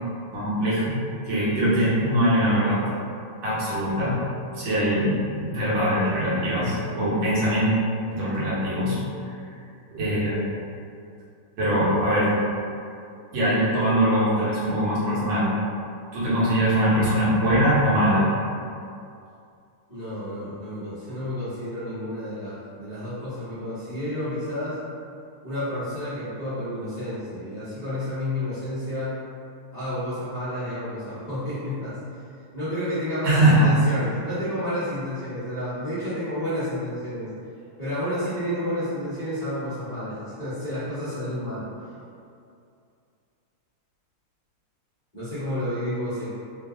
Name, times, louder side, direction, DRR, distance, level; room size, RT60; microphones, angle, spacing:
voice 1, 0.3-2.8 3.4-4.2 4.5-7.7 8.1-9.0 9.9-10.4 11.6-12.3 13.3-15.5 16.1-18.3 33.2-33.7, equal, 75° right, -8 dB, 1.9 m, -22 dB
voice 2, 19.9-24.8 25.4-29.2 29.7-32.0 32.5-37.3 37.8-41.7 45.1-46.3, left 1 dB, 35° left, -15 dB, 0.6 m, -30 dB
3.9 x 2.2 x 3.5 m, 2.5 s
omnidirectional pair, 2.4 m